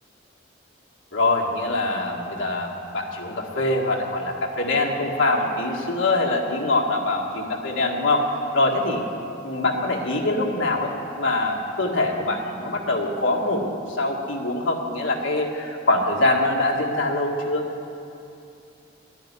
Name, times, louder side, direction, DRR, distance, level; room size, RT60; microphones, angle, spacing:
voice 1, 1.1-8.2 8.5-9.0 9.4-17.6, left 2 dB, 90° left, 0 dB, 1.8 m, -24 dB
11.5 x 10.0 x 9.8 m, 2.7 s
head